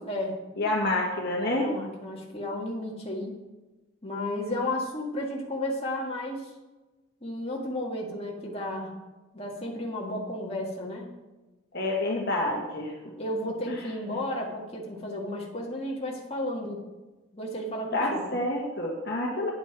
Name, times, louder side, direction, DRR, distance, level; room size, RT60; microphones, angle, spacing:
voice 1, 0.0-0.4 1.5-3.4 4.0-6.5 7.2-8.9 9.3-11.1 13.2-16.8 17.3-18.3, left 1 dB, 30° left, -2 dB, 1.8 m, -33 dB
voice 2, 0.6-1.7 11.7-12.9 13.7-13.8 17.9-19.5, left 1 dB, 50° left, -1 dB, 1.5 m, -28 dB
9.5 x 8.2 x 6.0 m, 1.1 s
head